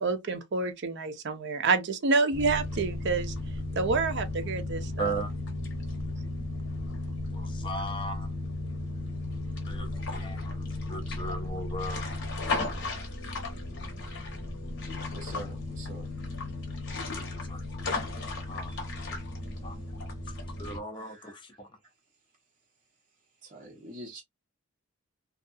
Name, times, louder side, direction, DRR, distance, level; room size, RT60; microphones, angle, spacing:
voice 1, 0.0-3.3 3.7-4.9, right 4 dB, 55° right, 0.5 m, -28 dB
sound 1, 2.3-20.8, left 2 dB, 55° left, 1.0 m, -35 dB
voice 2, 5.0-5.3 7.3-8.3 9.7-12.2 17.5-17.6 18.5-18.8 19.6-19.8 20.2-21.8, right 2 dB, 25° left, 0.5 m, -37 dB
voice 3, 15.1-16.1 18.7-18.9 21.0-21.4 23.4-24.2, right 1 dB, 40° right, 1.0 m, -45 dB
2.6 x 2.3 x 2.5 m
head